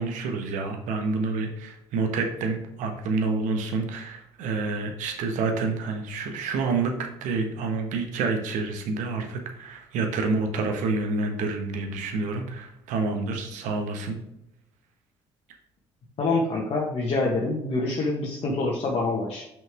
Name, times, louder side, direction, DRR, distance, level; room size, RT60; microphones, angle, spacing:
voice 1, 0.0-14.2, right 3 dB, 65° right, 4 dB, 1.3 m, -28 dB
voice 2, 16.2-19.4, left 3 dB, 50° left, -3 dB, 1.6 m, -26 dB
6.1 x 5.3 x 3.7 m, 0.84 s
hypercardioid pair, 50°, 14 cm